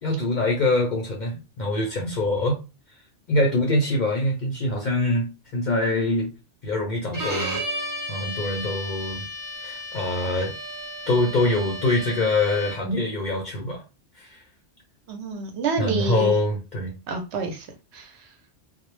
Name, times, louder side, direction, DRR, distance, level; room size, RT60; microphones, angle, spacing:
voice 1, 0.0-2.6 3.3-6.3 6.6-7.6 8.1-9.2 9.6-10.5 11.1-13.8 14.2-14.3 15.8-16.9, left 2 dB, 55° left, 0.5 m, -24 dB
Bowed string instrument, 7.1-13.0, equal, 35° right, 0.3 m, -33 dB
voice 2, 15.1-16.3 17.1-17.7 17.9-18.3, right 4 dB, 70° right, 0.8 m, -28 dB
2.1 x 2.0 x 3.0 m
omnidirectional pair, 1.2 m